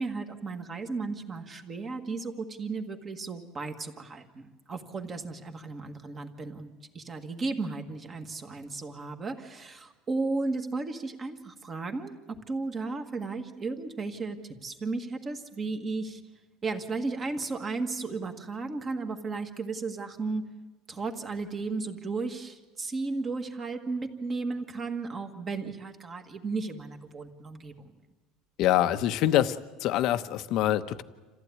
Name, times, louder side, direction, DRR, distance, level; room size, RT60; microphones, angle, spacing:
voice 1, 0.0-6.7 6.9-14.4 14.6-16.2 16.6-20.4 20.9-27.9, right 3 dB, 20° right, 6 dB, 1.7 m, -34 dB
voice 2, 28.6-31.0, left 12 dB, 50° left, 11 dB, 0.9 m, -25 dB
27.5 x 15.0 x 9.6 m, 1.3 s
cardioid pair, 165°, 0 cm